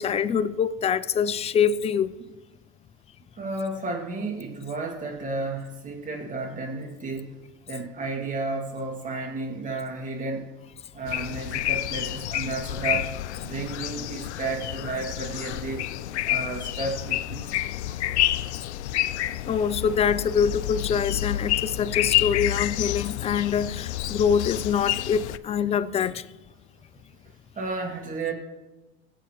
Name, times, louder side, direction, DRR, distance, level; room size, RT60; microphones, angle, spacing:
voice 1, 0.0-2.1 19.5-26.2, left 7 dB, 20° left, 0.3 m, -24 dB
voice 2, 3.4-7.4 7.7-10.5 10.9-13.1 13.4-15.9 16.2-18.3 27.6-28.3, right 3 dB, 25° right, 2.2 m, -32 dB
sound 1, 11.1-25.4, left 14 dB, 85° left, 0.5 m, -29 dB
20.0 x 8.0 x 3.1 m
hypercardioid pair, 105°, 33 cm